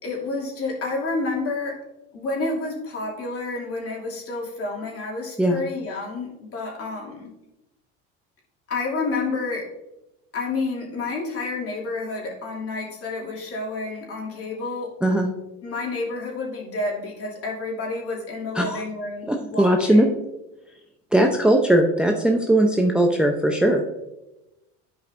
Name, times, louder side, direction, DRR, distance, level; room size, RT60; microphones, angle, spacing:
voice 1, 0.0-1.8 2.1-7.3 8.7-9.7 10.3-14.9 15.6-20.2, left 3 dB, 45° left, -3 dB, 2.7 m, -29 dB
voice 2, 19.3-20.1 21.1-23.8, right 1 dB, 5° right, 2 dB, 0.6 m, -19 dB
11.0 x 5.3 x 2.6 m, 0.94 s
supercardioid pair, 100°, 31 cm